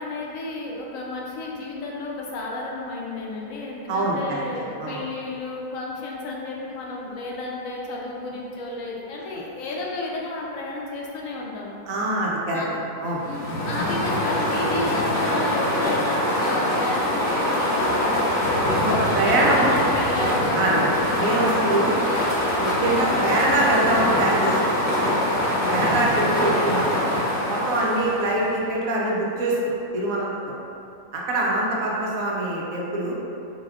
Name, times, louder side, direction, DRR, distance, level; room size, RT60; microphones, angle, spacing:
voice 1, 0.0-11.8 12.5-12.7 13.2-18.3 19.1-20.7 21.5-21.6, left 2 dB, 65° left, -3 dB, 0.9 m, -32 dB
voice 2, 3.9-4.4 4.8-5.0 11.9-12.6 13.0-13.2 18.8-19.7 20.5-20.9 21.2-21.9 22.6-24.8 25.7-27.0 27.5-30.6 31.1-33.1, right 2 dB, 70° right, -4 dB, 1.0 m, -24 dB
sound 1, 13.2-28.6, left 1 dB, 45° left, 0.6 m, -23 dB
4.2 x 3.3 x 2.4 m, 2.7 s
omnidirectional pair, 1.6 m